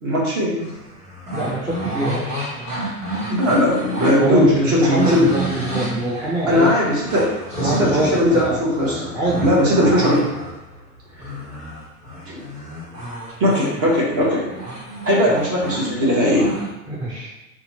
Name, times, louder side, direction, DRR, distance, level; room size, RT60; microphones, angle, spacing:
voice 1, 0.0-0.7 3.3-5.3 6.5-10.3 12.3-12.5 13.4-14.5 15.0-16.5, left 1 dB, 30° right, -4 dB, 1.3 m, -19 dB
sound 1, 0.6-16.7, right 1 dB, 85° right, 1.4 m, -30 dB
voice 2, 1.3-2.7 4.2-6.7 7.6-8.6 9.1-9.5 16.9-17.3, right 1 dB, 10° right, -7 dB, 0.5 m, -23 dB
2.8 x 2.6 x 4.1 m, 0.97 s
figure-of-eight pair, 85°, 46 cm